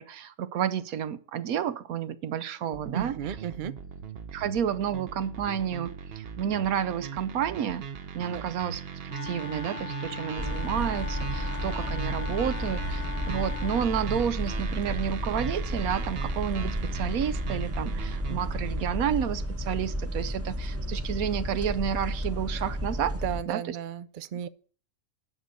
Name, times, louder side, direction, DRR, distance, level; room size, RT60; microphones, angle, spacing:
voice 1, 0.0-3.4 4.3-7.8 8.1-8.8 9.1-23.1 23.5-23.8, right 9 dB, 90° right, 1.2 m, -30 dB
sound 1, 2.7-19.5, right 7 dB, 50° right, 0.9 m, -39 dB
voice 2, 2.9-3.7 8.3-8.4 23.2-24.5, right 9 dB, 65° right, 0.5 m, -34 dB
Wind instrument woodwind instrument, 9.1-13.9, left 9 dB, 70° left, 1.1 m, -40 dB
sound 2, 10.4-23.4, equal, 15° right, 0.7 m, -32 dB
9.5 x 6.7 x 6.3 m
omnidirectional pair, 1.5 m